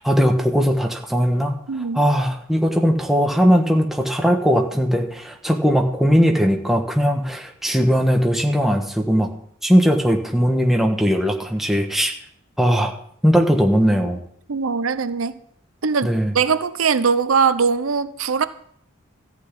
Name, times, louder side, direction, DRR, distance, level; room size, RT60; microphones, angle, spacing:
voice 1, 0.0-1.6 1.9-9.3 9.6-12.1 12.6-12.9 13.2-14.2 16.0-16.3, equal, ahead, 2 dB, 1.3 m, -19 dB
voice 2, 1.7-2.0 14.5-15.3 15.8-18.4, right 5 dB, 90° right, 13 dB, 0.7 m, -21 dB
13.5 x 6.0 x 8.5 m, 0.67 s
head